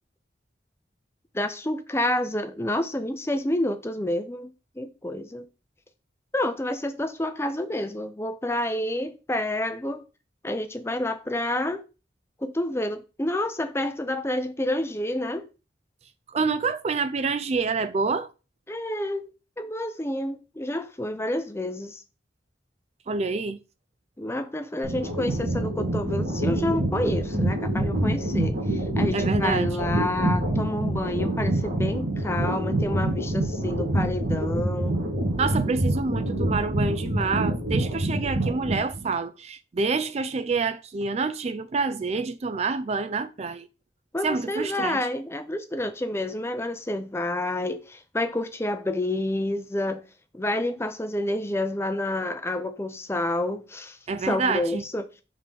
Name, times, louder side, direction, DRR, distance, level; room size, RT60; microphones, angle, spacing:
voice 1, 1.3-5.5 6.3-10.0 10.4-11.8 12.4-15.5 18.7-19.3 19.6-22.0 24.2-35.0 44.1-50.0 50.3-54.0 54.2-55.0, left 1 dB, 15° left, 0.5 m, -29 dB
voice 2, 16.3-18.3 23.1-23.6 29.1-29.7 35.4-43.7 44.2-45.0 54.1-54.8, right 4 dB, 35° right, 0.3 m, -27 dB
sound 1, 24.8-39.1, right 1 dB, 60° right, 2.3 m, -26 dB
5.0 x 3.7 x 5.8 m
head